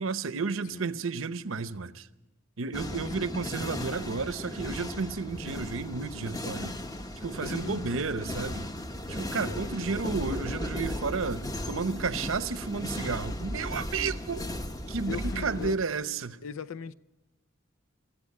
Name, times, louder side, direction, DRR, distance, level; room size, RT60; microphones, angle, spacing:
voice 1, 0.0-2.1 2.6-6.7 7.2-8.7 9.1-14.4 14.9-16.4, right 4 dB, 75° right, 0.8 m, -32 dB
sound 1, 2.7-15.8, left 1 dB, 20° left, 0.8 m, -36 dB
voice 2, 7.4-8.7 9.3-9.9 15.1-15.8 16.4-16.9, left 5 dB, 85° left, 0.6 m, -40 dB
22.5 x 14.5 x 8.6 m
head